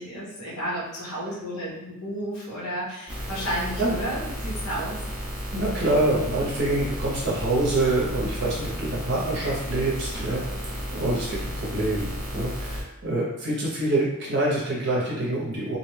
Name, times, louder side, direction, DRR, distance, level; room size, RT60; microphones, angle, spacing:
voice 1, 0.0-5.0 6.5-6.6, equal, 75° left, -6 dB, 1.0 m, -32 dB
sound 1, 3.1-12.8, equal, 5° right, 0.5 m, -33 dB
voice 2, 5.5-15.8, right 2 dB, 50° right, -5 dB, 0.6 m, -26 dB
2.5 x 2.1 x 3.1 m, 0.95 s
head